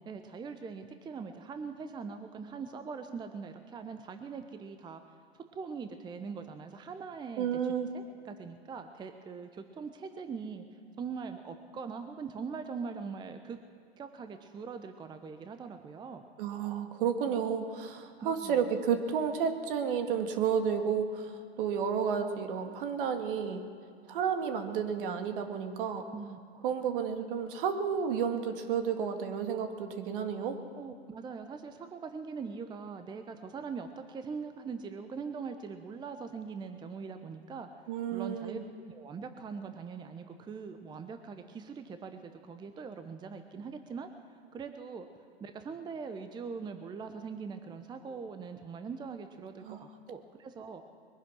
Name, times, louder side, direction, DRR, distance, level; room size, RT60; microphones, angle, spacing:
voice 1, 0.1-5.0 5.5-7.5 7.9-10.6 11.0-13.6 14.0-16.2 18.2-18.7 26.1-26.4 30.8-37.7 38.1-38.6 38.9-44.1 44.5-45.1 45.4-50.9, right 5 dB, 15° right, 8 dB, 0.7 m, -42 dB
voice 2, 7.4-7.9 16.4-23.6 24.1-26.1 26.6-30.6 37.9-38.6 49.6-49.8, right 7 dB, 55° right, 6 dB, 1.9 m, -31 dB
22.0 x 10.5 x 6.3 m, 2.2 s
hypercardioid pair, 110°, 32 cm